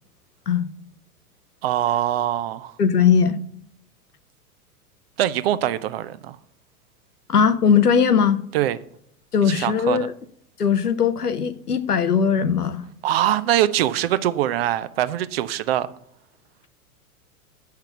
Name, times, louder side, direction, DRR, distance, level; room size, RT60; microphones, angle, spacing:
voice 1, 1.6-2.8 5.2-6.4 8.5-8.8 9.4-10.1 13.0-15.9, right 12 dB, 45° right, 0.5 m, -23 dB
voice 2, 2.8-3.4 7.3-8.4 9.3-10.1 10.6-12.8, left 7 dB, 85° left, 0.7 m, -19 dB
7.6 x 5.8 x 5.7 m
figure-of-eight pair, 95°, 45 cm